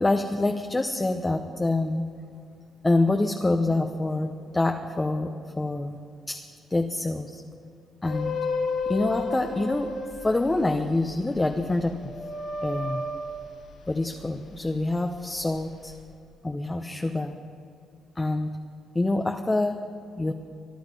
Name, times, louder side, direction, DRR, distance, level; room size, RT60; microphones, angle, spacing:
voice 1, 0.0-2.1 2.8-6.4 6.7-7.4 8.0-8.4 8.9-9.9 10.2-12.1 12.6-13.0 13.9-15.9 16.4-17.4 18.2-18.6 18.9-19.8 20.2-20.3, left 2 dB, 20° left, 4 dB, 0.9 m, -26 dB
sound 1, 8.0-14.7 15.1-16.0, left 3 dB, 70° left, 4.9 m, -33 dB
24.0 x 11.5 x 5.3 m, 2.5 s
cardioid pair, 90°, 0 cm